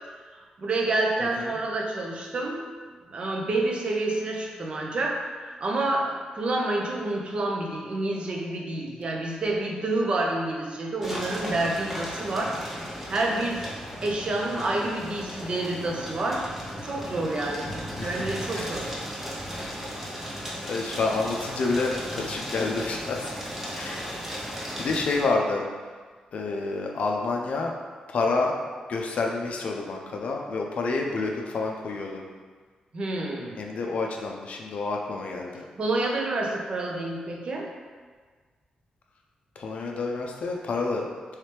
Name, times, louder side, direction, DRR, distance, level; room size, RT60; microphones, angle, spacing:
voice 1, 0.6-2.6 3.1-5.2 5.6-12.5 13.1-13.7 14.0-16.5 16.8-17.7 18.0-18.8 32.9-33.6 35.8-37.7, right 2 dB, 45° right, -1 dB, 0.6 m, -28 dB
voice 2, 1.2-1.6 14.5-14.9 18.0-18.7 20.6-23.3 23.7-24.0 24.4-25.7 26.3-27.7 28.1-28.5 28.9-32.2 33.6-35.6 39.6-41.1, left 3 dB, 60° left, 1 dB, 0.4 m, -29 dB
sound 1, 11.0-25.2, equal, 10° right, 0.7 m, -36 dB
3.1 x 3.0 x 3.3 m, 1.5 s
cardioid pair, 95°, 2 cm